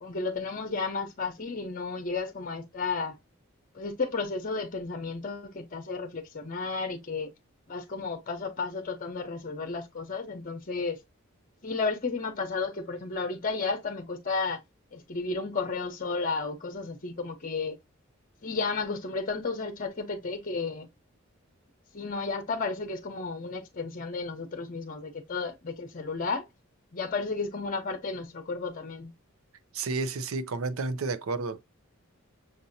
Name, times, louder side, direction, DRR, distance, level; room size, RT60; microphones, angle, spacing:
voice 1, 0.0-3.1 3.7-7.3 7.7-11.0 11.6-14.6 14.9-17.8 18.4-20.9 21.9-26.4 26.9-29.1, left 4 dB, 40° left, 0.8 m, -33 dB
voice 2, 29.7-31.6, right 3 dB, 80° right, 0.5 m, -31 dB
6.5 x 2.7 x 2.6 m
head